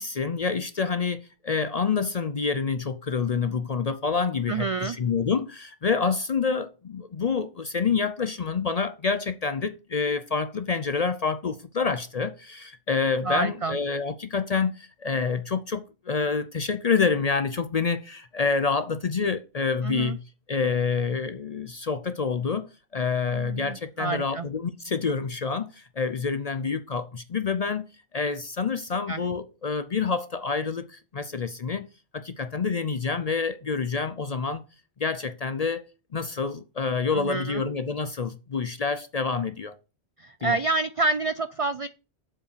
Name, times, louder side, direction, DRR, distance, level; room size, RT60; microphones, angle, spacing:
voice 1, 0.0-20.2 20.5-27.8 28.1-31.9 32.1-34.6 35.0-35.8 36.1-39.7 40.4-40.6, left 5 dB, 45° left, 0.5 m, -27 dB
voice 2, 4.5-5.0 13.2-13.8 19.8-20.2 23.3-24.5 29.1-29.2 37.1-37.6 40.2-41.9, right 3 dB, 60° right, 0.3 m, -28 dB
7.4 x 5.3 x 6.7 m
omnidirectional pair, 1.2 m